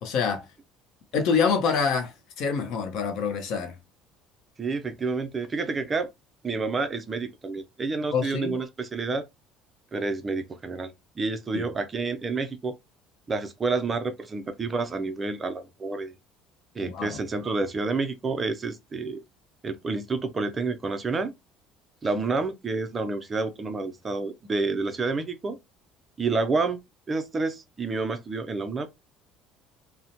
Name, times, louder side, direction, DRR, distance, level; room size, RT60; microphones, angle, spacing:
voice 1, 0.0-0.4 1.1-3.8 8.1-8.6 11.5-11.6 16.8-17.2, left 5 dB, 55° left, 0.6 m, -26 dB
voice 2, 4.6-6.1 6.4-9.3 9.9-12.8 13.3-16.1 16.7-19.2 19.6-21.3 22.0-25.6 26.2-26.8 27.1-28.9, right 3 dB, 20° right, 0.3 m, -29 dB
2.8 x 2.0 x 2.6 m
cardioid pair, 160°, 0 cm